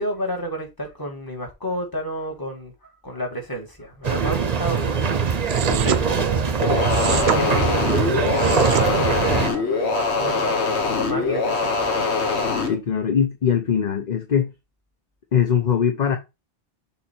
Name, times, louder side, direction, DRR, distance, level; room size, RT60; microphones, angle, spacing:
voice 1, 0.0-5.1 5.7-6.6 6.9-10.5 11.0-11.9, equal, 20° left, 1.8 m, -31 dB
sound 1, 4.0-9.5, right 5 dB, 40° right, 0.8 m, -22 dB
sound 2, 5.5-6.0 6.9-7.4 8.2-8.9, right 9 dB, 80° right, 0.9 m, -26 dB
sound 3, 6.6-12.7, left 4 dB, 85° left, 1.4 m, -23 dB
voice 2, 12.7-14.5 15.3-16.2, left 8 dB, 45° left, 0.8 m, -21 dB
6.9 x 3.3 x 4.4 m
omnidirectional pair, 1.1 m